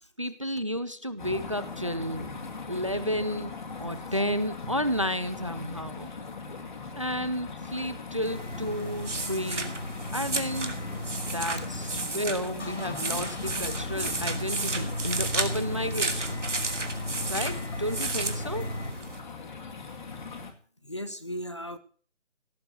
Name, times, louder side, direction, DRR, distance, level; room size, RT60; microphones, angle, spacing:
voice 1, 0.2-2.3 2.7-6.1 7.0-9.8 10.1-10.8 11.3-16.5 17.3-18.7, equal, 25° right, 15 dB, 0.6 m, -32 dB
sound 1, 1.2-20.5, left 4 dB, 40° left, 2.3 m, -40 dB
sound 2, 8.2-19.2, right 3 dB, 80° right, 2.7 m, -34 dB
sound 3, 8.3-12.1 12.4-18.9, left 1 dB, 70° left, 5.3 m, -37 dB
voice 2, 20.1-20.5 20.8-21.8, equal, 25° left, 12 dB, 0.7 m, -38 dB
17.0 x 6.7 x 8.0 m, 0.43 s
figure-of-eight pair, 160°, 36 cm